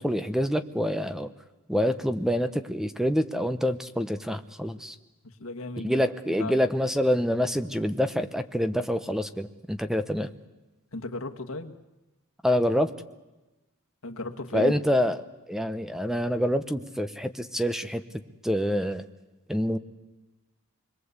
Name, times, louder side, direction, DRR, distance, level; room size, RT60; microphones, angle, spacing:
voice 1, 0.0-1.3 1.7-5.0 5.8-10.3 12.4-12.9 14.5-15.2 15.5-18.0 18.4-19.0 19.5-19.8, equal, ahead, 11 dB, 0.9 m, -26 dB
voice 2, 5.2-6.0 6.4-6.6 10.9-11.7 14.0-14.8, left 2 dB, 70° left, 5 dB, 1.7 m, -35 dB
27.0 x 22.0 x 8.2 m, 1.1 s
head